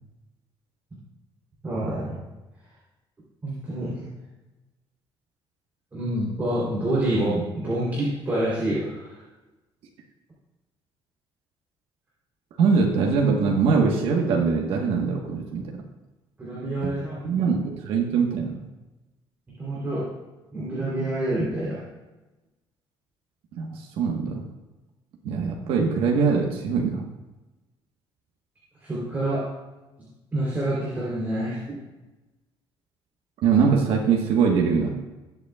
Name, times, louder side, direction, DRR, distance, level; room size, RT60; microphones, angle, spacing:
voice 1, 1.6-2.2 3.4-4.1 5.9-9.1 16.4-17.4 19.6-20.1 20.5-21.8 28.8-29.4 30.3-31.8, right 1 dB, 20° right, -8 dB, 3.3 m, -27 dB
voice 2, 12.6-15.7 16.8-16.9 17.2-18.7 23.5-24.4 25.2-27.0 33.4-35.0, right 5 dB, 75° right, 0 dB, 1.3 m, -22 dB
20.0 x 8.2 x 2.3 m, 1.1 s
cardioid pair, 170°, 9 cm